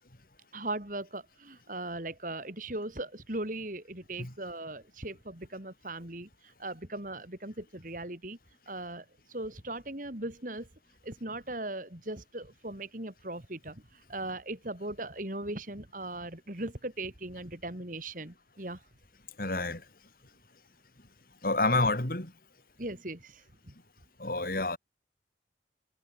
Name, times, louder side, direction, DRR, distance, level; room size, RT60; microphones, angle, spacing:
voice 1, 0.5-8.4 8.7-10.7 11.0-18.8 22.8-23.7, right 2 dB, 45° right, 3.7 m, -39 dB
voice 2, 19.4-19.8 21.4-22.3 24.2-24.8, left 2 dB, 50° left, 3.3 m, -28 dB
head